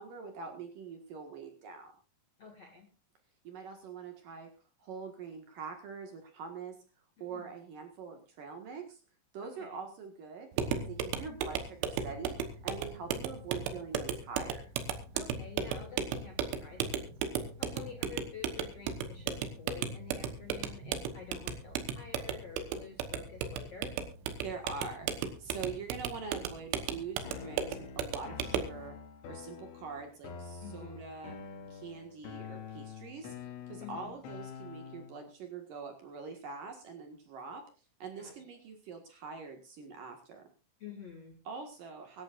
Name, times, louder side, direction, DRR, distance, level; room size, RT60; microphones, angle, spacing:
voice 1, 0.0-1.9 3.4-4.5 4.8-6.8 7.2-9.0 9.3-12.4 12.6-14.6 24.4-29.0 29.3-31.4 31.7-33.3 33.7-37.6 38.0-40.4 41.4-42.2, right 5 dB, 55° right, 4 dB, 2.8 m, -44 dB
voice 2, 2.4-2.9 7.2-7.5 9.4-9.8 15.1-24.0 30.6-31.0 33.8-34.1 38.2-38.4 40.8-41.4, left 5 dB, 50° left, 3 dB, 2.1 m, -49 dB
sound 1, 10.5-28.8, right 7 dB, 80° right, 3.6 m, -36 dB
sound 2, 27.2-35.2, left 6 dB, 85° left, 4.4 m, -46 dB
24.0 x 11.5 x 2.5 m, 0.32 s
omnidirectional pair, 5.4 m